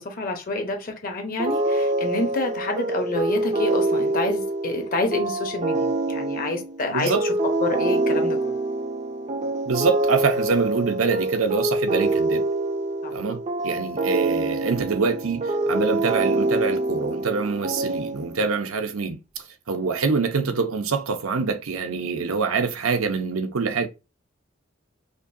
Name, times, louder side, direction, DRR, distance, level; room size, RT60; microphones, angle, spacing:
voice 1, 0.0-7.3 7.6-8.5 13.0-13.1, left 2 dB, 45° left, 0.9 m, -28 dB
sound 1, 1.4-18.6, right 2 dB, 35° right, 0.5 m, -25 dB
voice 2, 6.9-7.2 9.7-12.4 13.1-19.2 19.7-23.9, right 4 dB, 80° right, 0.7 m, -25 dB
5.0 x 2.2 x 2.7 m
head